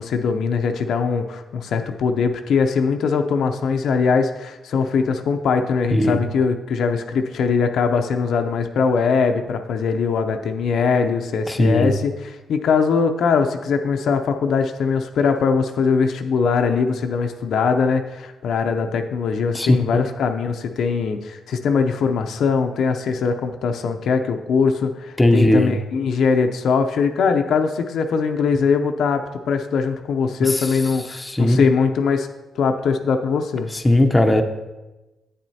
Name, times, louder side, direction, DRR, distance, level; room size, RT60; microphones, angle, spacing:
voice 1, 0.0-32.3 32.6-33.7, left 5 dB, 75° left, 6 dB, 0.5 m, -21 dB
voice 2, 11.5-11.9 19.5-20.1 25.2-25.7 30.4-30.8 31.1-31.7 33.7-34.4, left 1 dB, 15° left, 5 dB, 0.6 m, -18 dB
8.4 x 7.5 x 2.7 m, 1.1 s
cardioid pair, 85°, 0 cm